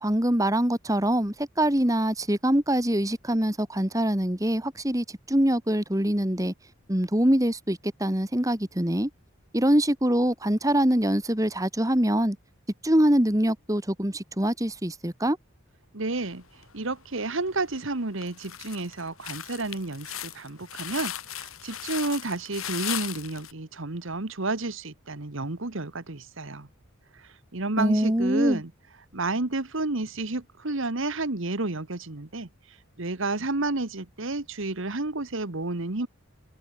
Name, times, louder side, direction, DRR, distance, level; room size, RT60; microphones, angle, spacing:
voice 1, 0.0-6.5 6.9-9.1 9.5-12.4 12.8-15.4 27.8-28.6, right 1 dB, 15° right, 1.8 m, -24 dB
voice 2, 15.9-16.4 16.7-26.7 27.1-28.7 29.1-32.5 33.0-36.1, right 2 dB, 65° right, 1.5 m, -31 dB
sound 1, 16.6-17.2 17.7-17.8 18.2-23.5, left 11 dB, 80° left, 5.4 m, -37 dB
head